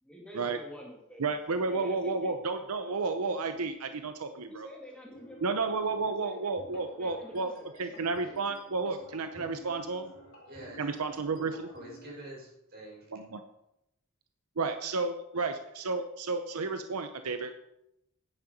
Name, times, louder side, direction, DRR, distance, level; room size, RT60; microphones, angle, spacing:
voice 1, 0.0-2.4 4.5-8.4 10.8-10.9, equal, 5° left, -1 dB, 2.0 m, -49 dB
voice 2, 1.2-4.7 5.4-7.5 7.8-10.1 10.8-11.7 13.1-13.4 14.6-17.5, right 3 dB, 85° right, 8 dB, 0.8 m, -32 dB
sound 1, 5.1-12.2, equal, 60° left, 3.6 m, -52 dB
voice 3, 10.5-10.8 11.3-13.1, right 1 dB, 50° right, -2 dB, 5.3 m, -47 dB
10.0 x 9.7 x 5.2 m, 0.82 s
head